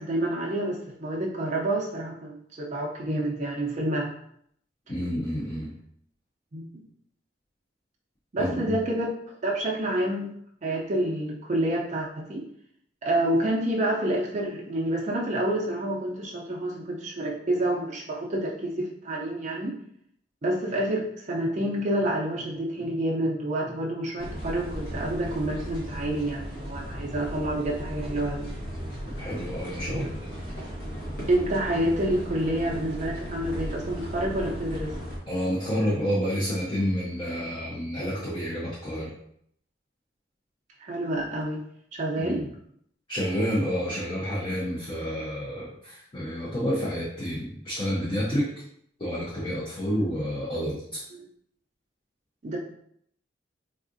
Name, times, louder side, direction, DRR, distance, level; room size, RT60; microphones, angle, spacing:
voice 1, 0.0-4.1 6.5-6.8 8.3-9.1 9.4-10.3 10.6-12.5 13.0-19.8 20.4-28.5 29.9-30.1 31.3-34.9 40.8-41.6 41.9-42.5 49.9-50.1 51.1-51.2 52.4-52.6, right 1 dB, 40° right, -3 dB, 0.4 m, -28 dB
voice 2, 4.9-5.7 8.4-8.8 29.2-30.1 35.3-39.1 42.1-42.4 43.1-48.4 49.0-51.0, equal, 30° left, -8 dB, 0.6 m, -29 dB
sound 1, 24.2-35.2, equal, 70° left, 1.1 m, -36 dB
3.5 x 2.4 x 2.5 m, 0.69 s
head